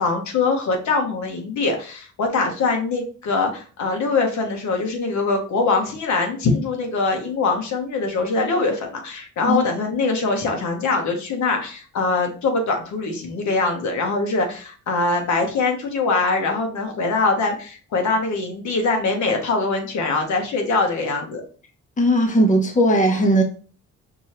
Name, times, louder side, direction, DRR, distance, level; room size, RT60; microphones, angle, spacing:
voice 1, 0.0-21.4, left 3 dB, 70° left, 3 dB, 1.0 m, -23 dB
voice 2, 22.0-23.4, right 1 dB, 25° left, 2 dB, 0.9 m, -17 dB
4.7 x 2.6 x 2.9 m, 0.40 s
cardioid pair, 90°, 30 cm